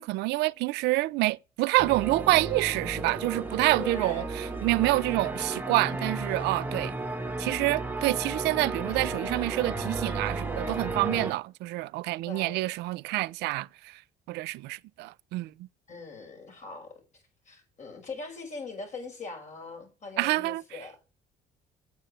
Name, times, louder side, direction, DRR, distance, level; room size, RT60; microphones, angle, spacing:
voice 1, 0.0-6.9 7.4-14.0 14.3-15.5 20.2-20.6, right 20 dB, 85° right, 0.4 m, -27 dB
sound 1, 1.8-11.3, right 3 dB, 10° right, 1.1 m, -33 dB
voice 2, 3.8-4.7 12.2-12.6 15.9-21.0, left 3 dB, 45° left, 5.5 m, -42 dB
8.9 x 7.3 x 5.4 m
cardioid pair, 110°, 17 cm